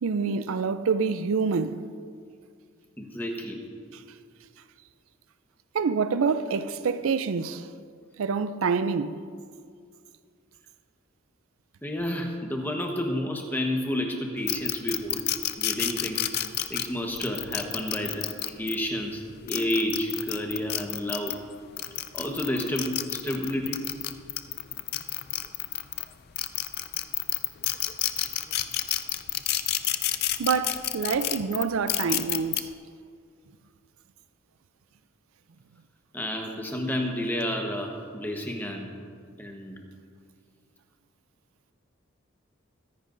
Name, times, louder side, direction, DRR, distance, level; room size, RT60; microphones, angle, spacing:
voice 1, 0.0-1.9 3.9-4.0 5.7-7.7 8.2-9.2 30.4-32.7, right 5 dB, 75° right, 0.4 m, -26 dB
voice 2, 3.0-3.6 11.8-15.2 15.6-16.2 16.7-21.4 22.1-23.8 36.1-38.9 39.4-39.8, left 1 dB, 10° left, 1.1 m, -30 dB
sound 1, 14.5-18.8 19.3-21.4 21.8-26.0 26.4-32.6, left 13 dB, 45° left, 0.4 m, -29 dB
23.0 x 10.0 x 2.6 m
head